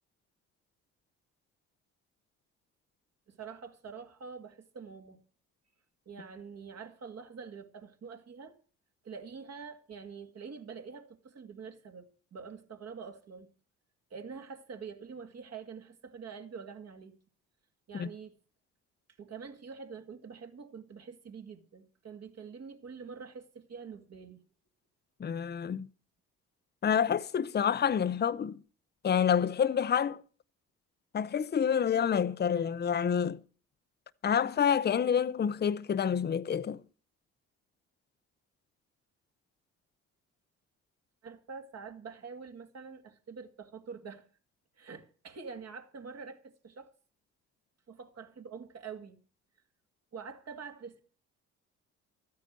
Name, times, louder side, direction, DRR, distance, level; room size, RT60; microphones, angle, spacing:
voice 1, 3.3-5.2 6.1-8.6 9.0-13.5 14.1-17.2 17.9-18.3 19.2-24.4 41.2-44.3 44.8-46.9 47.9-49.2 50.1-51.0, right 5 dB, 50° right, 2.5 m, -46 dB
voice 2, 25.2-25.9 26.8-28.6 29.0-30.2 31.1-33.4 34.2-36.8, left 8 dB, 30° left, 0.7 m, -28 dB
13.5 x 9.4 x 7.7 m
supercardioid pair, 70°, 31 cm